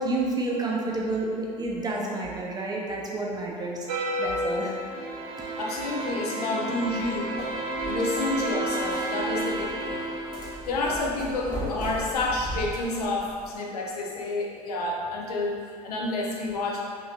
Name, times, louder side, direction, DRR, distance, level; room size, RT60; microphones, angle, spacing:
voice 1, 0.0-4.7, right 2 dB, 20° right, -3 dB, 0.5 m, -30 dB
sound 1, 3.9-10.8, right 1 dB, 65° right, 0.6 m, -31 dB
voice 2, 5.6-7.3 7.8-10.0 10.7-15.6 15.8-16.8, left 2 dB, 75° left, -2 dB, 0.5 m, -29 dB
sound 2, 6.9-13.5, equal, 20° left, 0.9 m, -38 dB
3.0 x 2.8 x 2.5 m, 2.3 s
figure-of-eight pair, 65°, 20 cm